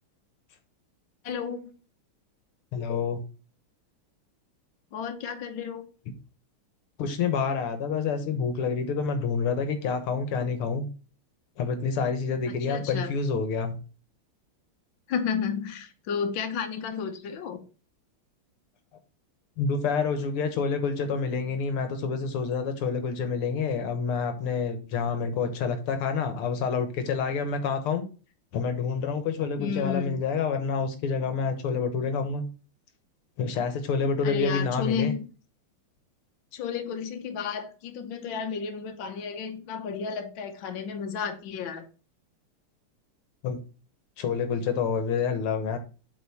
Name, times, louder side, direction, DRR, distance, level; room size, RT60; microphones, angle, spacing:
voice 1, 1.2-1.7 4.9-5.8 12.5-13.1 15.1-17.6 29.6-30.2 34.2-35.2 36.5-41.8, left 6 dB, 70° left, 5 dB, 1.7 m, -32 dB
voice 2, 2.7-3.2 7.0-10.9 11.6-13.8 19.6-28.1 28.5-32.4 33.4-35.1 43.4-43.6 44.2-45.8, left 5 dB, 85° left, 8 dB, 2.0 m, -28 dB
8.1 x 4.0 x 4.1 m, 0.34 s
omnidirectional pair, 2.4 m